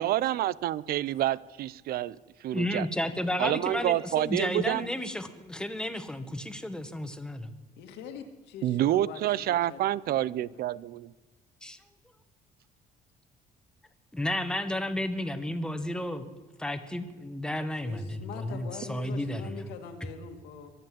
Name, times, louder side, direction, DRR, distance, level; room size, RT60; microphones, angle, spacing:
voice 1, 0.0-2.2 2.4-2.9 3.4-4.9 8.6-11.1, right 13 dB, 65° right, 21 dB, 0.5 m, -28 dB
voice 2, 2.5-7.5 11.6-11.8 14.1-16.3 16.6-19.5, left 1 dB, 5° left, 8 dB, 1.5 m, -32 dB
voice 3, 7.8-9.8 10.1-10.6 17.8-20.7, left 6 dB, 85° left, 5 dB, 2.2 m, -43 dB
23.5 x 7.9 x 7.8 m, 1.3 s
cardioid pair, 110°, 17 cm